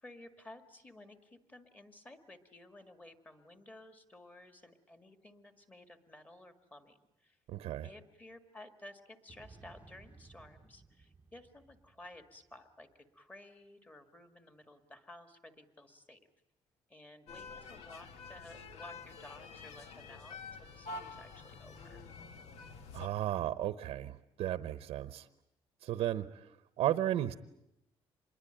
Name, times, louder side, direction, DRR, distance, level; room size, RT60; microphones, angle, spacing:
voice 1, 0.0-7.4 7.8-16.2 16.9-22.0, left 1 dB, 15° left, 7 dB, 1.9 m, -55 dB
voice 2, 7.5-7.9 22.9-25.3 25.8-27.3, right 12 dB, 75° right, 13 dB, 0.9 m, -34 dB
sound 1, 9.3-12.8, right 4 dB, 15° right, 0.9 m, -59 dB
sound 2, 17.3-23.1, left 4 dB, 80° left, 1.9 m, -48 dB
26.0 x 22.0 x 9.0 m, 0.83 s
cardioid pair, 170°, 11 cm